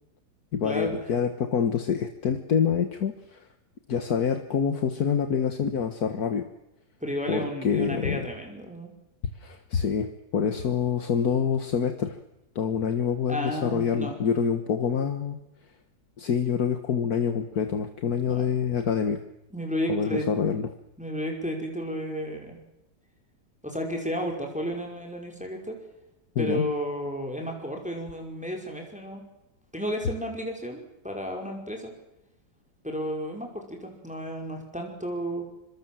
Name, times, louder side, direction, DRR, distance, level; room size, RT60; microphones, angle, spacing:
voice 1, 0.5-3.5 3.9-6.5 7.3-8.3 9.4-12.2 12.6-15.4 16.2-19.2 19.9-20.7 26.4-26.7, left 7 dB, 65° left, 8 dB, 2.0 m, -26 dB
voice 2, 7.0-8.9 13.3-14.1 18.3-18.4 19.5-20.3 21.0-22.6 23.6-25.8 26.4-29.2 29.7-31.9 32.8-35.4, equal, 5° right, 1 dB, 5.4 m, -32 dB
25.5 x 24.5 x 7.7 m, 0.88 s
omnidirectional pair, 1.8 m